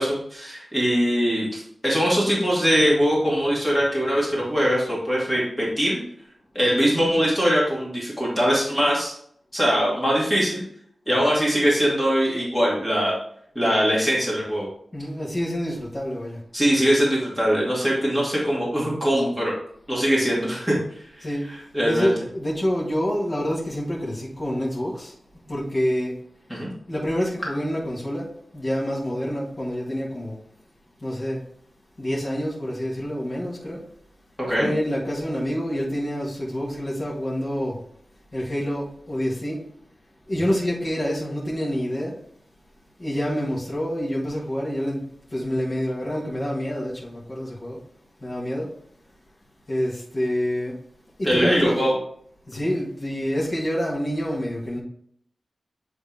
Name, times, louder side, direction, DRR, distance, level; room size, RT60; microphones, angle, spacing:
voice 1, 0.0-6.0 6.5-9.1 9.5-10.6 11.1-13.2 13.5-14.7 16.5-19.5 19.9-20.7 21.2-21.3 21.7-22.1 26.5-26.7 34.5-34.7 51.2-52.0, equal, 10° left, 2.4 m, -22 dB
voice 2, 14.9-16.4 21.2-21.4 21.8-25.1 25.5-26.1 26.9-30.4 31.0-31.4 32.0-33.8 34.6-37.8 38.3-39.6 40.3-42.2 43.0-45.0 45.3-47.8 48.2-48.7 49.7-50.8 51.2-51.8 52.5-54.8, equal, 40° left, 1.8 m, -27 dB
8.9 x 3.5 x 3.5 m
wide cardioid pair, 95°, 0 cm